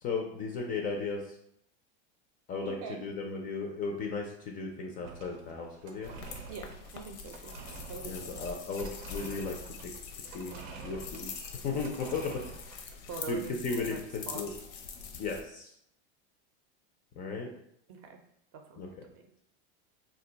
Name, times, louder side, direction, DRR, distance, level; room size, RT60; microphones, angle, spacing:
voice 1, 0.0-1.2 2.5-2.8 3.0-6.1 8.1-9.6 9.8-9.9 10.3-11.3 11.6-12.4 13.3-14.5 15.2-15.7 17.2-17.5 18.8-18.9, left 4 dB, 25° left, 2 dB, 0.3 m, -35 dB
voice 2, 2.6-3.0 6.5-7.6 7.9-8.6 13.1-14.4 17.9-18.2 18.7-19.2, right 5 dB, 45° right, 4 dB, 0.5 m, -44 dB
sound 1, 5.0-13.0, right 5 dB, 90° right, 0.6 m, -48 dB
sound 2, 6.0-15.4, left 6 dB, 85° left, 0.6 m, -44 dB
2.5 x 2.2 x 3.8 m, 0.72 s
supercardioid pair, 130°, 33 cm